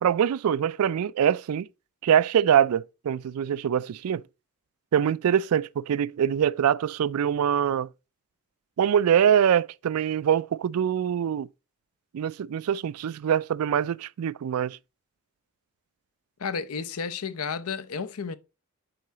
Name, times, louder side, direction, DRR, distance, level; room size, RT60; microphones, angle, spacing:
voice 1, 0.0-1.7 2.0-4.2 4.9-7.9 8.8-11.5 12.1-14.8, right 9 dB, 85° right, 0.3 m, -24 dB
voice 2, 16.4-18.4, left 5 dB, 85° left, 0.7 m, -32 dB
7.8 x 4.7 x 4.0 m
head